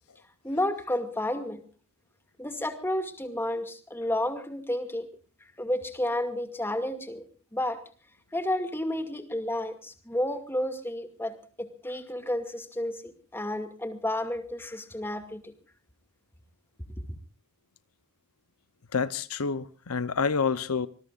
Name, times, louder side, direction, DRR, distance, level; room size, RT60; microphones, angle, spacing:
voice 1, 0.4-1.6 2.4-5.1 5.6-7.2 7.5-7.8 8.3-15.5, left 1 dB, 10° left, 2.3 m, -31 dB
voice 2, 18.9-20.9, left 5 dB, 85° left, 0.9 m, -28 dB
26.0 x 20.5 x 2.5 m
head